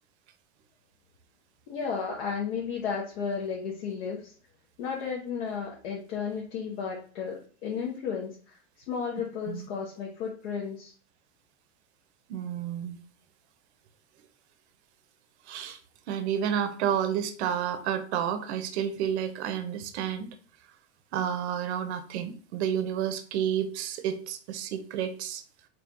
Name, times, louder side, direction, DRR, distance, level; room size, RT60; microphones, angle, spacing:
voice 1, 1.7-4.3 4.8-8.6 8.9-10.9, left 6 dB, 65° left, -2 dB, 1.0 m, -33 dB
voice 2, 12.3-13.0 15.5-15.8 16.1-20.3 21.1-25.4, right 9 dB, 65° right, 8 dB, 0.7 m, -30 dB
3.7 x 2.4 x 3.7 m, 0.43 s
hypercardioid pair, 120°, 36 cm